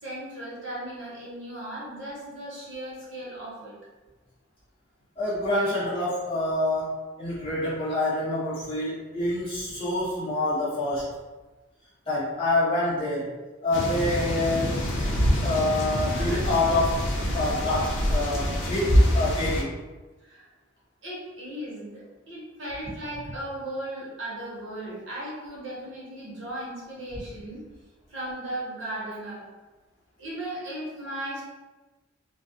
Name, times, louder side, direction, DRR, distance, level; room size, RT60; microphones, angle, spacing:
voice 1, 0.0-3.8 5.4-5.5 6.6-6.8 15.8-16.4 20.2-20.5 21.0-27.6 28.1-29.4 30.2-31.4, right 1 dB, 65° right, -7 dB, 0.9 m, -37 dB
voice 2, 5.2-6.9 7.2-11.1 12.1-13.3 13.6-14.8 15.4-17.1 17.3-19.7, left 2 dB, 25° left, -11 dB, 1.0 m, -27 dB
sound 1, 13.7-19.6, equal, 60° left, 0.4 m, -25 dB
2.4 x 2.0 x 2.7 m, 1.2 s
head